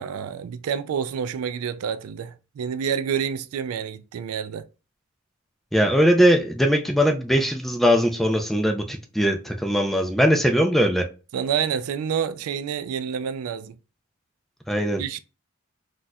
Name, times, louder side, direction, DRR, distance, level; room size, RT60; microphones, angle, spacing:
voice 1, 0.0-4.7 11.3-13.7 15.0-15.2, right 7 dB, 80° right, 0.3 m, -28 dB
voice 2, 5.7-11.0 14.7-15.0, equal, ahead, 0.4 m, -20 dB
4.0 x 2.4 x 2.2 m
head